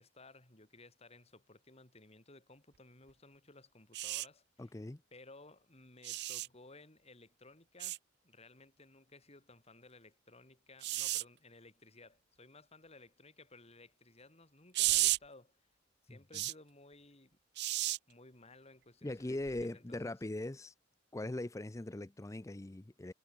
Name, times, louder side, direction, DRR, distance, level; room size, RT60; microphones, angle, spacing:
voice 1, 0.0-4.7 5.1-8.0 8.2-15.7 16.0-17.4 18.1-20.2, left 2 dB, 35° left, 4.4 m, -58 dB
sound 1, 3.9-4.3 6.0-6.5 7.8-8.0 10.8-11.2 14.7-15.2 16.3-16.5 17.6-18.0 19.5-19.6, right 17 dB, 60° right, 0.6 m, -33 dB
voice 2, 4.6-5.0 16.1-16.4 19.0-20.7 21.1-23.1, left 1 dB, 15° left, 0.5 m, -41 dB
head